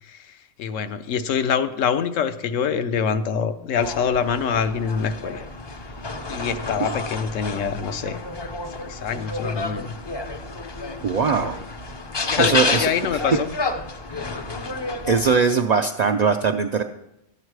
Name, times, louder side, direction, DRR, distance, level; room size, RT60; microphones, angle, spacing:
voice 1, 0.0-5.4 6.3-8.2 8.7-9.9 12.2-13.5, left 7 dB, 80° left, 10 dB, 1.1 m, -25 dB
sound 1, 3.8-15.4, left 3 dB, 35° left, 0.4 m, -30 dB
voice 2, 11.0-11.6 12.4-12.9 15.1-16.8, right 5 dB, 70° right, 5 dB, 0.4 m, -20 dB
12.0 x 8.0 x 4.7 m, 0.87 s
omnidirectional pair, 1.3 m